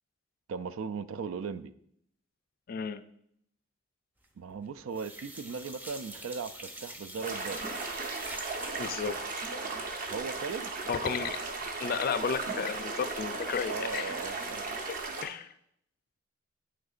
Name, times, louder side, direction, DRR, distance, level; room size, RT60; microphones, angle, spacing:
voice 1, 0.5-1.7 4.4-7.6 10.1-10.7 13.7-14.6, right 5 dB, 80° right, 13 dB, 0.4 m, -38 dB
voice 2, 2.7-3.0 8.8-9.2 10.9-11.4 11.8-14.2 14.9-15.5, left 6 dB, 45° left, 12 dB, 0.4 m, -33 dB
sound 1, 4.2-4.7 4.9-11.8 12.1-12.2 12.5-12.6, right 1 dB, 10° right, 0.5 m, -46 dB
sound 2, 7.2-15.2, right 3 dB, 45° right, 0.8 m, -36 dB
8.6 x 6.4 x 2.4 m, 0.71 s
head